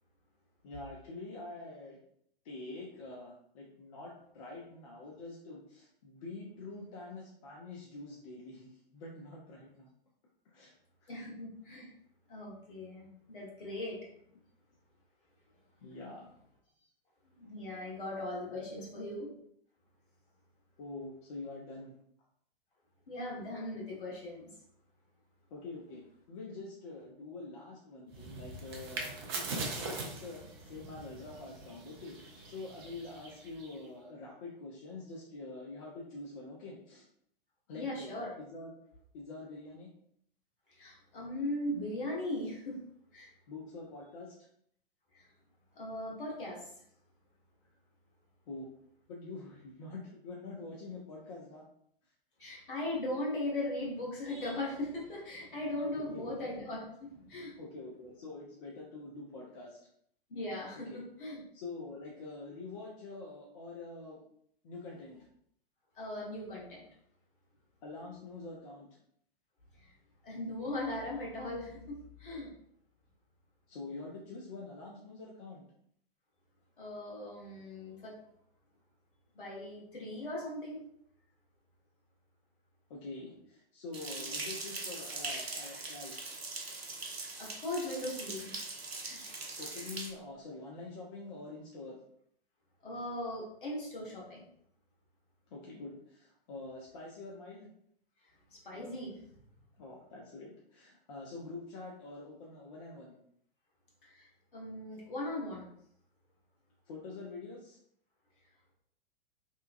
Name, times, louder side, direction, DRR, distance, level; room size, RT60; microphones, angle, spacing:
voice 1, 0.6-2.0 2.4-9.9 10.5-10.7 11.0-11.1 15.8-16.3 18.5-18.9 20.8-21.9 25.5-26.0 26.3-37.1 37.7-38.7 39.1-39.9 43.5-44.3 48.5-48.7 49.1-51.7 55.9-56.3 57.6-59.8 60.9-61.0 61.5-64.2 64.6-65.2 67.8-68.9 73.7-75.7 82.9-86.3 89.6-92.0 95.5-97.7 99.8-103.2 106.9-107.8, left 3 dB, 35° left, -3 dB, 0.5 m, -46 dB
voice 2, 11.1-11.9 12.3-14.0 17.4-19.3 23.1-24.5 37.7-38.3 40.8-42.8 43.1-43.3 45.1-45.2 45.7-46.7 52.4-57.6 60.3-61.4 66.0-66.8 70.2-72.5 76.8-78.2 79.3-80.8 87.4-88.6 89.0-89.2 92.8-94.4 98.5-99.2 104.0-105.7, left 1 dB, 60° left, -3 dB, 1.2 m, -39 dB
sound 1, 28.1-33.9, right 3 dB, 25° right, 0.3 m, -42 dB
sound 2, 83.9-90.1, right 3 dB, 85° right, 0.6 m, -41 dB
2.9 x 2.2 x 2.4 m, 0.67 s
figure-of-eight pair, 105°, 30 cm